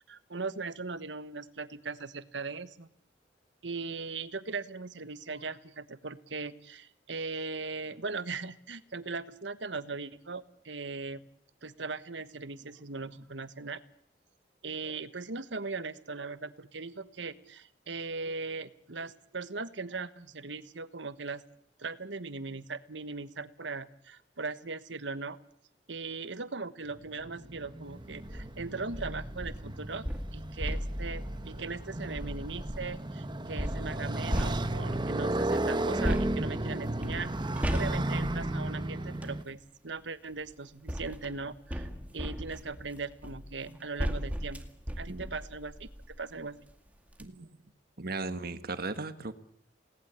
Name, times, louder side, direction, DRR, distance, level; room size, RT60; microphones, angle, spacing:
voice 1, 0.1-2.9 3.6-11.2 11.6-13.8 14.6-21.4 21.8-25.4 25.9-30.1 30.3-44.7 45.0-46.6 47.4-47.5 48.3-48.6, right 4 dB, 75° right, 13 dB, 1.3 m, -39 dB
Motorcycle, 26.9-39.4, right 1 dB, 25° right, 1.1 m, -34 dB
sound 1, 28.1-28.5 28.9-33.0 33.6-35.1 36.0-39.4 40.3-46.3 46.7-46.8 47.1-47.3, equal, 10° right, 2.2 m, -37 dB
voice 2, 45.1-45.4 47.2-47.5 48.0-49.3, right 3 dB, 55° right, 10 dB, 1.6 m, -37 dB
29.5 x 19.0 x 8.3 m, 0.66 s
head